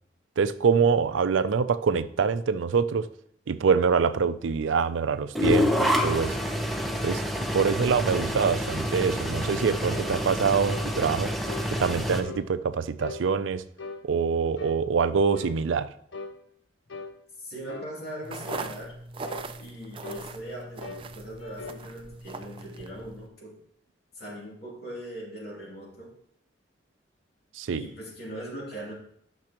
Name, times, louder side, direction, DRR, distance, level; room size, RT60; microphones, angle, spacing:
voice 1, 0.4-3.1 3.5-6.4 7.0-7.2 7.5-11.3 11.7-13.6 14.0-15.9 27.6-27.9, right 5 dB, 85° right, 13 dB, 0.4 m, -25 dB
sound 1, 5.3-12.2, equal, ahead, 0.7 m, -27 dB
voice 2, 7.5-8.4 17.4-19.0 19.6-23.6 24.1-26.1 27.7-28.9, right 1 dB, 55° left, -4 dB, 2.9 m, -41 dB
sound 2, 9.9-10.1 10.7-10.9 11.5-11.7 12.2-12.5 13.0-13.3 13.8-14.0 14.6-14.8 15.3-15.6 16.1-16.4 16.9-17.2 17.7-17.9 18.5-18.7 19.2-19.5 20.0-20.3 20.8-21.1 21.4-21.8, left 3 dB, 75° left, 0.8 m, -39 dB
sound 3, 18.2-23.3, right 3 dB, 30° right, 0.4 m, -40 dB
12.0 x 6.0 x 3.0 m, 0.68 s
head